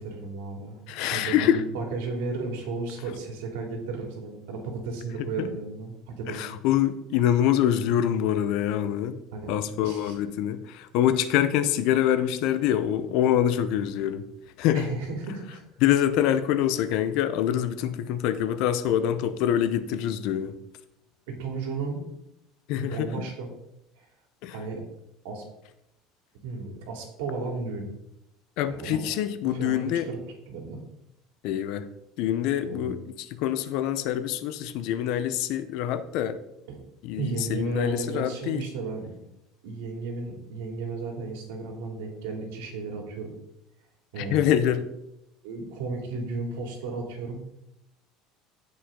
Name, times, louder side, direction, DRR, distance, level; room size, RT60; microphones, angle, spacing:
voice 1, 0.0-6.4 9.3-10.2 14.7-15.6 21.3-22.0 22.8-23.5 24.0-24.1 24.5-24.8 25.2-25.4 26.4-27.9 28.7-29.0 29.4-30.2 30.5-30.8 32.6-32.9 36.7-36.8 37.2-39.1 39.6-43.3 44.1-44.5 45.4-47.4, right 3 dB, 85° right, 2 dB, 2.8 m, -34 dB
voice 2, 0.9-1.6 5.4-5.5 6.3-9.2 9.5-14.2 14.6-14.9 15.8-20.5 22.7-23.3 24.4-24.5 28.6-30.1 31.4-31.9 32.2-33.0 33.3-36.4 37.0-38.6 44.2-44.9, left 10 dB, 55° left, 12 dB, 0.7 m, -25 dB
16.5 x 5.6 x 3.8 m, 0.86 s
cardioid pair, 170°, 0 cm